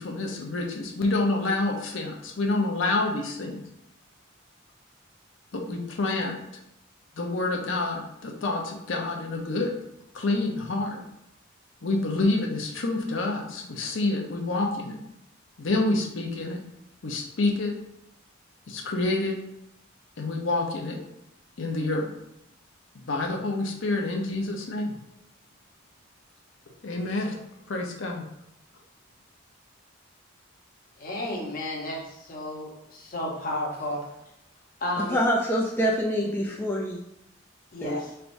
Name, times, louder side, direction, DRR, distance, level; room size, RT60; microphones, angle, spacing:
voice 1, 0.0-3.6 5.5-6.4 7.2-9.7 10.1-11.0 11.8-15.0 15.6-16.6 17.0-17.7 18.7-19.4 20.2-21.0 21.6-22.1 22.9-25.0 26.8-27.4 27.7-28.3, left 2 dB, 70° left, 0.7 m, -28 dB
voice 2, 31.0-34.0 34.8-35.2 37.7-38.1, left 1 dB, 45° left, 0.9 m, -32 dB
voice 3, 35.1-37.0 37.8-38.0, equal, 10° left, 0.4 m, -25 dB
4.6 x 3.3 x 2.6 m
head